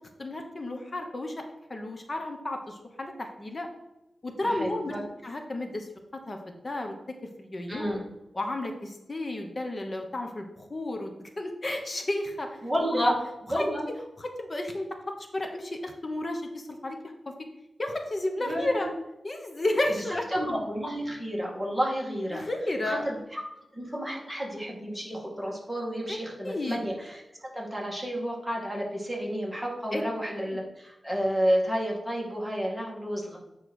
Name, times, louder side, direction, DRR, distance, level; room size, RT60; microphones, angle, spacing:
voice 1, 0.2-1.4 1.7-3.7 4.2-4.9 5.2-6.9 7.4-8.0 8.3-12.6 12.9-13.1 13.5-13.7 14.2-17.3 17.8-18.9 19.2-20.3 22.3-23.1 26.1-26.2 26.4-26.8 29.9-30.0, left 1 dB, 35° left, 4 dB, 1.0 m, -32 dB
voice 2, 4.4-5.0 7.7-8.1 12.6-13.2 13.5-13.8 18.4-18.9 20.3-22.4 22.8-23.4 23.7-33.4, equal, 5° right, -3 dB, 2.1 m, -31 dB
9.0 x 3.2 x 6.2 m, 0.94 s
wide cardioid pair, 100°, 0 cm